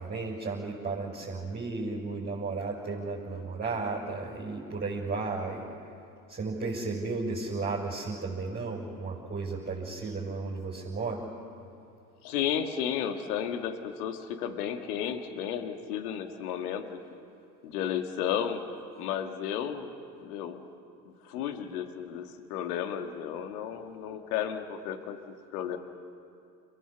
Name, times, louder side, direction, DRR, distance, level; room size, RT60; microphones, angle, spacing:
voice 1, 0.0-5.6 6.3-11.2, right 3 dB, 20° right, -4 dB, 5.9 m, -34 dB
voice 2, 12.2-16.8 17.1-17.2 17.6-18.6 19.0-19.9 20.2-20.7 21.1-25.8, left 9 dB, 60° left, 7 dB, 1.9 m, -33 dB
30.0 x 16.5 x 7.2 m, 2.5 s
figure-of-eight pair, 70°, 49 cm